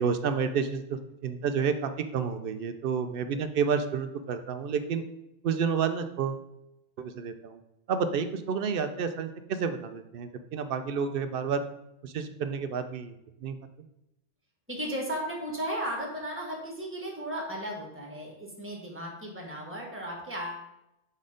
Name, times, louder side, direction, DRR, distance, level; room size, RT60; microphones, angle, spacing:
voice 1, 0.0-5.0 5.4-6.5 7.0-7.6 7.9-11.6 12.0-13.2 13.4-13.5, right 6 dB, 60° right, 9 dB, 0.6 m, -30 dB
voice 2, 14.7-20.7, equal, 10° right, -1 dB, 1.3 m, -35 dB
5.2 x 4.1 x 4.9 m, 0.86 s
omnidirectional pair, 1.3 m